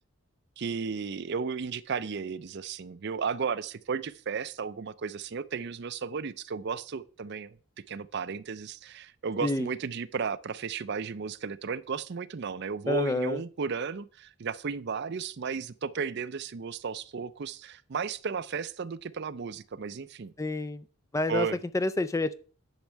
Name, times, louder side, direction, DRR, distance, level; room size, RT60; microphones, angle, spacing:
voice 1, 0.6-7.6 7.9-20.3 21.3-21.6, right 5 dB, 50° right, 0.5 m, -34 dB
voice 2, 12.9-13.4 20.4-20.8 21.1-21.5 21.7-22.3, left 2 dB, 15° left, 0.3 m, -28 dB
10.5 x 6.4 x 4.6 m
head